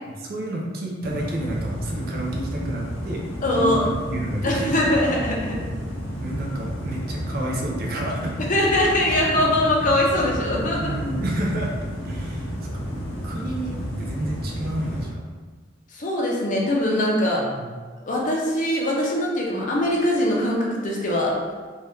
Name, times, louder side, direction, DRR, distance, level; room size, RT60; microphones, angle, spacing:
voice 1, 0.1-3.2 3.5-5.1 6.2-8.4 10.8-11.7 12.0-12.9 13.2-15.3 17.4-17.7, right 1 dB, 50° right, -1 dB, 0.5 m, -30 dB
sound 1, 1.0-15.1, equal, 80° left, 0.8 m, -31 dB
voice 2, 3.4-3.9 4.4-5.6 8.5-10.8 15.9-17.5 18.0-21.4, left 1 dB, 40° left, -3 dB, 0.6 m, -22 dB
2.7 x 2.3 x 3.4 m, 1.4 s
head